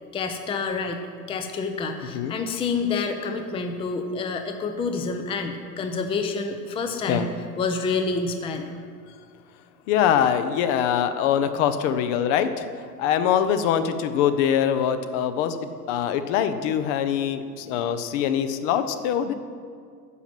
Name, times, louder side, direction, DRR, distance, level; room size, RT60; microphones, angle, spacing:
voice 1, 0.1-8.7, left 4 dB, 10° left, 5 dB, 0.6 m, -28 dB
voice 2, 9.9-12.7 13.0-19.3, left 9 dB, 50° left, 10 dB, 0.9 m, -23 dB
9.7 x 5.9 x 7.6 m, 2.1 s
hypercardioid pair, 105°, 48 cm